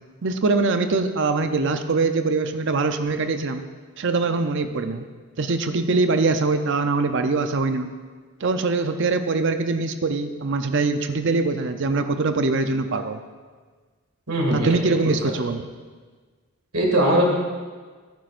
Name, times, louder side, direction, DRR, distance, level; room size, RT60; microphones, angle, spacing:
voice 1, 0.2-3.6 4.0-5.0 5.4-7.9 8.4-13.2 14.5-15.6, right 3 dB, 55° right, 8 dB, 0.6 m, -23 dB
voice 2, 14.3-15.3 16.7-17.2, right 1 dB, 85° right, -1 dB, 2.4 m, -21 dB
14.5 x 9.3 x 2.6 m, 1.5 s
head